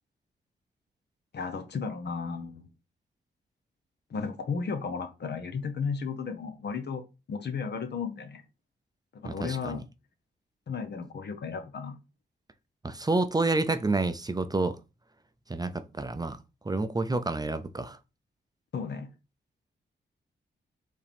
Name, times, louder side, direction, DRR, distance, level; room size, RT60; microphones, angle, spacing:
voice 1, 1.3-2.7 4.1-8.4 9.1-9.8 10.7-11.9 18.7-19.1, left 5 dB, 60° left, 1.0 m, -34 dB
voice 2, 9.2-9.8 12.8-14.8 15.5-16.4 16.6-18.0, right 2 dB, 20° right, 0.6 m, -29 dB
4.6 x 3.0 x 3.5 m
cardioid pair, 60°, 20 cm